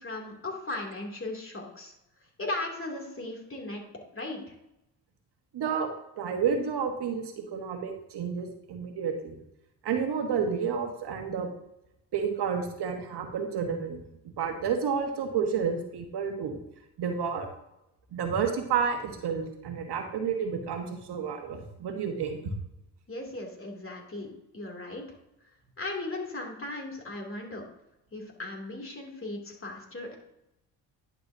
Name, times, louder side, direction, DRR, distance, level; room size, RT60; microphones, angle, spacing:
voice 1, 0.0-1.9 2.4-3.8 4.1-4.5 23.1-25.0 25.8-27.6 28.1-30.2, left 2 dB, 30° left, 0 dB, 2.7 m, -37 dB
voice 2, 5.5-5.9 6.2-9.4 9.8-11.5 12.1-14.1 14.4-16.6 17.0-17.5 18.1-22.4, right 6 dB, 60° right, 4 dB, 1.5 m, -30 dB
10.5 x 6.9 x 2.8 m, 0.86 s
supercardioid pair, 60°, 44 cm